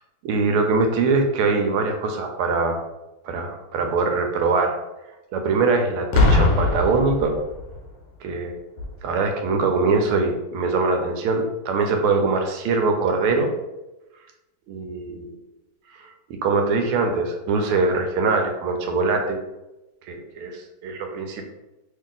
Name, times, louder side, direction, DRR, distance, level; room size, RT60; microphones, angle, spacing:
voice 1, 0.2-2.8 3.2-4.8 5.3-7.4 8.2-8.6 9.0-13.5 14.7-15.4 16.0-16.1 16.4-19.4 20.1-21.5, right 4 dB, 85° right, 4 dB, 1.5 m, -22 dB
Boom, 6.1-7.9 8.8-9.0, left 2 dB, 65° left, 1.3 m, -20 dB
3.2 x 2.8 x 3.8 m, 0.99 s
omnidirectional pair, 2.4 m